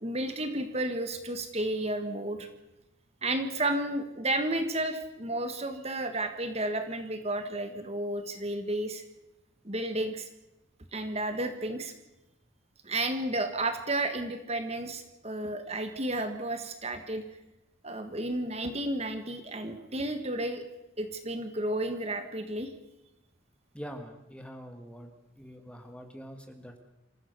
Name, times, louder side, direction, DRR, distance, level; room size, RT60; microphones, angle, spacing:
voice 1, 0.0-2.5 3.2-9.0 9.6-10.3 10.9-11.9 12.8-17.2 17.8-20.6 21.0-22.7, right 1 dB, 30° right, 7 dB, 1.5 m, -32 dB
voice 2, 23.7-26.8, equal, 5° left, 5 dB, 1.9 m, -45 dB
26.5 x 15.0 x 6.8 m, 0.94 s
head